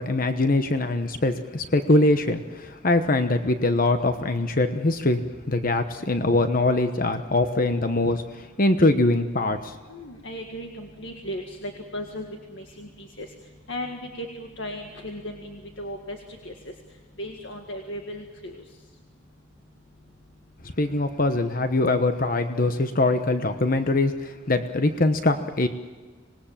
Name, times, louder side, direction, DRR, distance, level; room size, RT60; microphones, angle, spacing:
voice 1, 0.0-8.2 8.6-9.7 20.8-25.7, left 2 dB, 45° left, 8 dB, 1.1 m, -23 dB
voice 2, 9.9-13.3 13.7-16.2 16.4-16.5 17.2-18.6, equal, 65° left, 3 dB, 2.0 m, -36 dB
26.0 x 20.0 x 7.4 m, 1.4 s
head